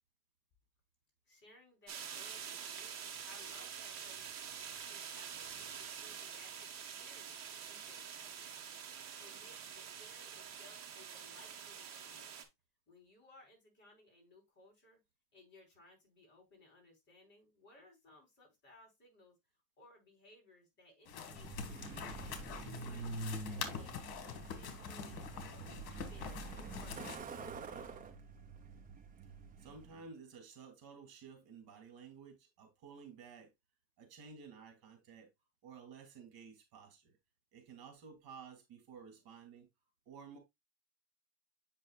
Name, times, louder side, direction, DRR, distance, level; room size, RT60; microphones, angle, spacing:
voice 1, 1.3-4.5 4.9-7.4 7.6-8.7 9.2-12.4 12.9-15.0 15.3-19.4 19.8-23.4 23.7-24.0 24.2-28.1, left 2 dB, 25° left, 3.8 m, -62 dB
sound 1, 1.9-12.4, right 7 dB, 35° right, 1.4 m, -47 dB
sound 2, 21.1-27.2, left 7 dB, 60° left, 1.7 m, -46 dB
Truck, 21.3-30.0, right 3 dB, 20° right, 0.7 m, -46 dB
voice 2, 29.6-33.5 34.0-35.3 35.6-37.2 37.5-39.7 40.1-40.4, right 5 dB, 55° right, 2.6 m, -54 dB
8.0 x 5.5 x 2.3 m
cardioid pair, 145°, 44 cm